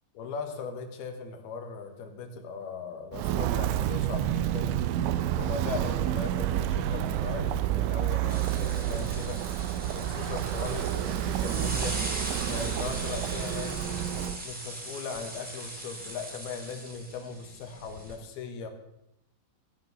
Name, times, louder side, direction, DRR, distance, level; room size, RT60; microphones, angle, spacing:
voice 1, 0.1-4.8 5.3-9.6 9.9-12.0 12.5-14.0 14.4-18.7, left 5 dB, 65° left, 6 dB, 3.0 m, -38 dB
Walk footsteps, 3.1-14.4, right 12 dB, 85° right, 3.0 m, -29 dB
sound 1, 8.3-18.1, right 1 dB, 10° right, 2.6 m, -40 dB
17.0 x 9.1 x 6.9 m, 0.83 s
omnidirectional pair, 5.4 m